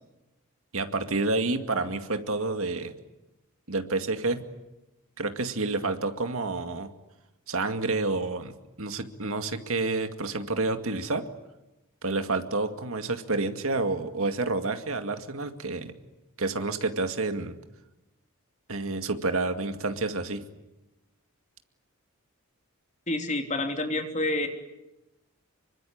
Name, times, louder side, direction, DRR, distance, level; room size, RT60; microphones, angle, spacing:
voice 1, 0.7-2.9 3.7-4.4 5.2-6.9 7.5-11.2 12.0-15.9 16.4-17.5 18.7-20.5, right 3 dB, 65° right, 7 dB, 2.3 m, -29 dB
voice 2, 23.1-24.5, left 2 dB, 35° left, 4 dB, 3.4 m, -28 dB
26.5 x 24.5 x 8.8 m, 0.98 s
head